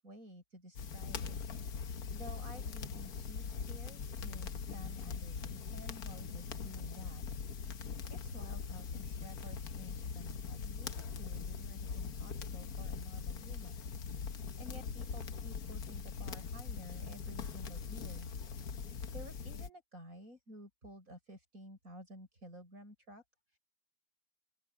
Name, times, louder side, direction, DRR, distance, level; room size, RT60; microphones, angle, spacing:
voice 1, 0.0-1.4 1.7-7.2 8.1-13.8 14.4-18.3 19.1-23.2 23.5-23.6, equal, 50° right, 8.3 m, -53 dB
sound 1, 0.8-19.7, left 6 dB, 65° left, 1.6 m, -41 dB
open air
omnidirectional pair, 1.8 m